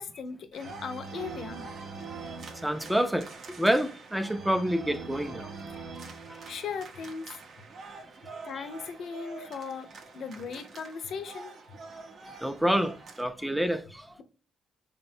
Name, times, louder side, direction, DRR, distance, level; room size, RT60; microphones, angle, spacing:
voice 1, 0.0-1.6 6.5-7.3 8.4-11.5, left 5 dB, 65° left, 0.5 m, -38 dB
sound 1, 0.5-13.2, right 4 dB, 60° right, 0.5 m, -44 dB
voice 2, 2.6-3.3 3.5-5.5 6.3-6.4 8.6-8.7 12.2-14.1, equal, 5° right, 0.4 m, -28 dB
3.2 x 2.1 x 2.5 m
cardioid pair, 90°, 0 cm